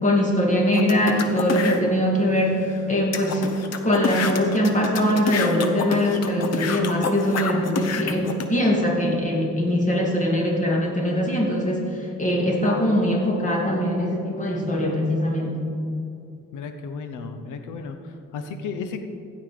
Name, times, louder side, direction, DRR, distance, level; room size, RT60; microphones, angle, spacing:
voice 1, 0.0-3.4 3.8-15.7, equal, 25° left, -2 dB, 2.6 m, -22 dB
sound 1, 0.7-1.8 2.4-2.5 2.7-2.8 3.1-8.5, left 5 dB, 55° left, 1.0 m, -28 dB
voice 2, 16.5-19.0, left 5 dB, 80° left, 7 dB, 0.9 m, -34 dB
15.5 x 5.7 x 5.1 m, 2.7 s
cardioid pair, 90°, 30 cm